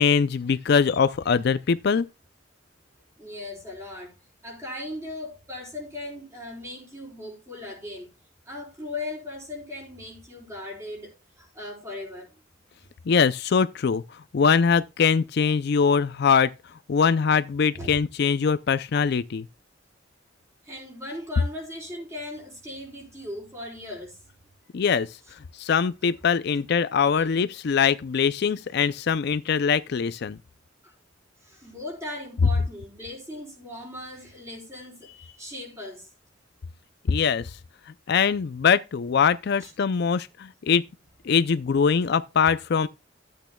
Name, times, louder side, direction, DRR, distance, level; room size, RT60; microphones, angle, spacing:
voice 1, 0.0-2.1 13.1-14.0 14.3-16.5 16.9-19.5 24.7-25.2 25.5-30.4 37.1-37.5 38.1-40.8 41.2-42.9, left 6 dB, 55° left, 0.4 m, -22 dB
voice 2, 3.2-4.1 4.4-8.1 8.5-11.1 11.4-12.3 17.7-18.0 20.6-24.2 27.2-27.3 30.8-30.9 31.4-36.1 39.6-39.7, left 1 dB, 15° right, 4.1 m, -38 dB
13.5 x 8.5 x 2.2 m
head